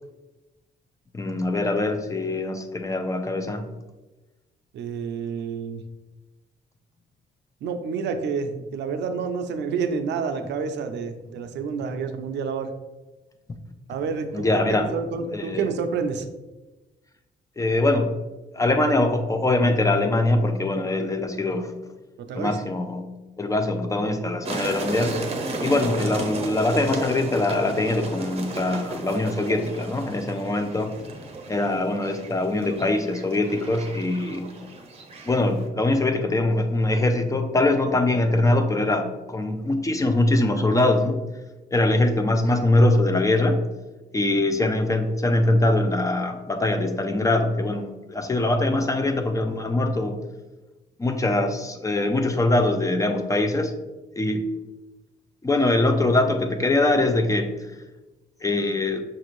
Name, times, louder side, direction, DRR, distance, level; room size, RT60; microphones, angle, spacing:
voice 1, 1.1-3.7 14.3-15.0 15.3-15.7 17.6-18.1 18.5-21.7 22.4-23.1 23.4-25.2 25.6-30.9 31.5-34.5 35.2-41.2 41.7-43.6 44.1-50.2 51.0-53.7 54.2-54.4 55.4-57.5 58.4-59.0, left 2 dB, 20° left, 6 dB, 0.4 m, -22 dB
voice 2, 4.7-5.8 7.6-12.7 13.9-16.3 22.2-22.6, right 5 dB, 75° right, 7 dB, 0.5 m, -29 dB
sound 1, 24.4-35.7, right 2 dB, 35° right, 0.6 m, -34 dB
5.7 x 2.6 x 3.0 m, 1.1 s
cardioid pair, 95°, 18 cm